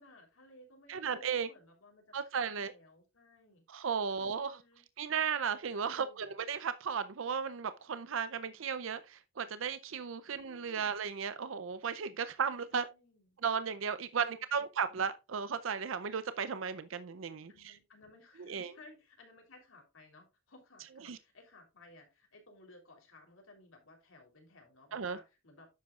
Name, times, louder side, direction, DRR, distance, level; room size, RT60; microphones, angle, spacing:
voice 1, 0.0-3.6 4.1-4.8 5.9-6.4 10.3-11.0 12.7-13.4 14.1-15.0 17.5-25.7, left 2 dB, 80° left, 3.5 m, -59 dB
voice 2, 0.9-1.5 2.1-2.7 3.7-4.6 5.0-12.9 13.4-17.7 18.5-18.7 21.0-21.2 24.9-25.2, right 6 dB, 75° right, 0.5 m, -35 dB
10.5 x 7.7 x 2.4 m
head